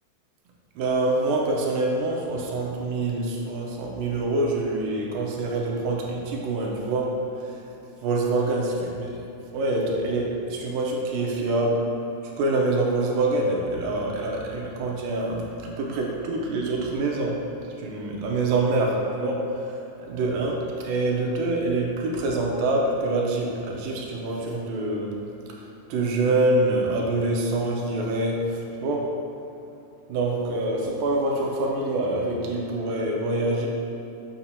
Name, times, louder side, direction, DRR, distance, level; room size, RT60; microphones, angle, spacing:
voice 1, 0.8-7.1 8.0-9.1 9.5-11.9 12.4-17.4 17.8-25.2 25.9-28.5 28.8-29.1 30.1-33.7, right 2 dB, 85° right, -1 dB, 2.4 m, -25 dB
7.0 x 6.6 x 2.8 m, 3.0 s
omnidirectional pair, 4.0 m